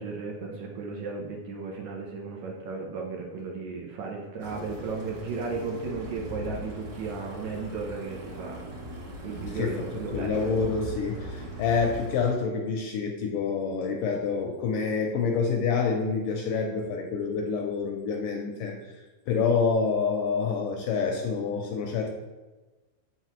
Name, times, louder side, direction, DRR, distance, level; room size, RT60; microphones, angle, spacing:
voice 1, 0.0-8.8 9.2-10.5, right 4 dB, 75° right, 0 dB, 1.7 m, -35 dB
sound 1, 4.4-12.2, equal, 50° right, 2.5 m, -39 dB
voice 2, 9.5-9.9 10.1-18.8 19.3-22.1, left 5 dB, 80° left, 2 dB, 2.0 m, -27 dB
7.7 x 5.7 x 3.0 m, 1.2 s
omnidirectional pair, 4.2 m